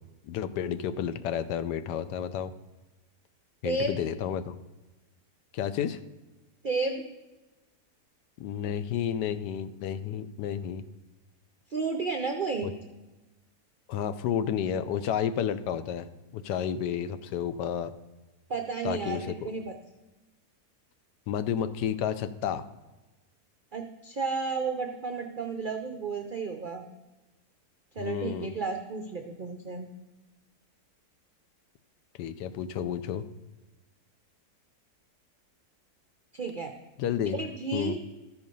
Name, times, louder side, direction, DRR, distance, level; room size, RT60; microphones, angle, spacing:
voice 1, 0.2-2.5 3.6-4.6 5.5-6.0 8.4-10.8 12.6-12.7 13.9-16.1 16.3-17.9 18.8-19.5 21.3-22.7 28.0-28.5 32.2-33.2 37.0-37.4 37.7-38.0, left 9 dB, 90° left, 11 dB, 1.2 m, -31 dB
voice 2, 3.6-4.0 6.6-7.0 11.7-12.7 18.5-19.8 23.7-26.9 27.9-29.9 36.3-36.7 37.3-38.1, right 4 dB, 70° right, 4 dB, 0.4 m, -32 dB
13.5 x 4.7 x 5.3 m, 1.1 s
omnidirectional pair, 1.7 m